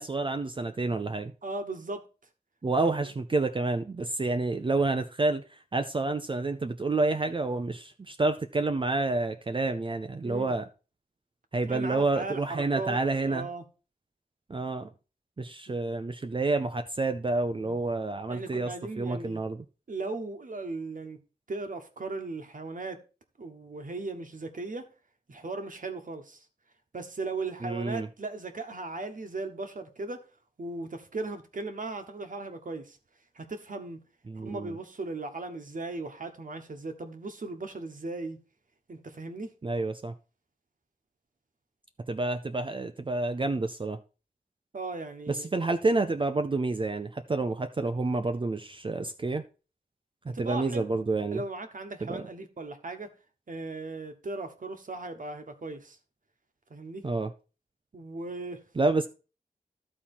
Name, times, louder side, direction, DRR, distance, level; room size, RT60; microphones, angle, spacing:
voice 1, 0.0-1.3 2.6-5.4 5.7-10.6 11.5-13.5 14.5-14.9 15.4-18.7 19.0-19.6 27.6-28.1 34.3-34.7 39.6-40.1 42.1-44.0 45.3-49.4 50.4-51.4 52.0-52.2 57.0-57.3 58.8-59.1, right 3 dB, 35° right, 0.5 m, -29 dB
voice 2, 1.4-2.0 2.8-3.1 10.2-10.5 11.6-13.6 15.7-15.8 17.5-17.8 18.3-19.4 19.9-21.2 21.5-23.0 23.4-24.9 25.3-26.5 26.9-30.3 30.6-33.0 33.3-34.0 34.4-38.4 38.9-39.5 44.7-45.5 50.3-51.0 51.3-53.1 53.5-56.0 56.7-57.1 57.9-58.6, right 3 dB, 55° right, 1.2 m, -37 dB
12.5 x 4.3 x 4.3 m
wide cardioid pair, 105°, 16 cm